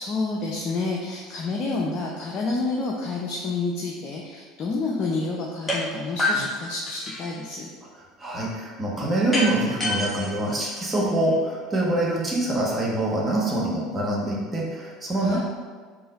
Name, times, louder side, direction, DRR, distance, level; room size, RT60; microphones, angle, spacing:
voice 1, 0.0-7.7 15.2-15.4, left 3 dB, 45° left, -2 dB, 0.5 m, -29 dB
sound 1, 5.7-5.8 6.2-7.4 9.3-11.3, left 1 dB, 15° left, 1.0 m, -28 dB
voice 2, 8.2-15.4, right 1 dB, 20° right, -4 dB, 1.2 m, -25 dB
3.9 x 2.6 x 4.0 m, 1.5 s
hypercardioid pair, 70°, 0 cm